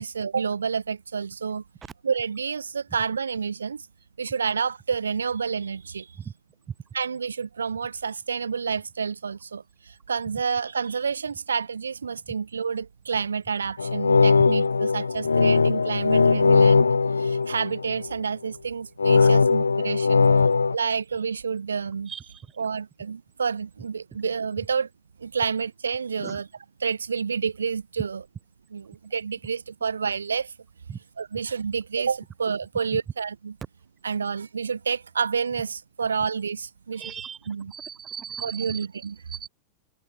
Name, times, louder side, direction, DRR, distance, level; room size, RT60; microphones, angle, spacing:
voice 1, 0.0-1.6 2.0-3.8 4.2-6.1 6.9-16.9 17.2-20.2 20.7-22.1 22.6-24.9 25.2-26.5 26.8-28.2 28.7-30.5 31.2-33.6 34.0-37.1 37.5-37.7 38.4-39.2, right 6 dB, 75° right, 0.5 m, -29 dB
sound 1, 13.8-18.1 19.0-20.8, left 4 dB, 75° left, 0.7 m, -20 dB
voice 2, 22.1-22.4 26.2-26.4 30.9-31.0 37.0-37.4 37.7-38.8 39.3-39.5, right 7 dB, 20° right, 0.8 m, -37 dB
figure-of-eight pair, 90°, 0 cm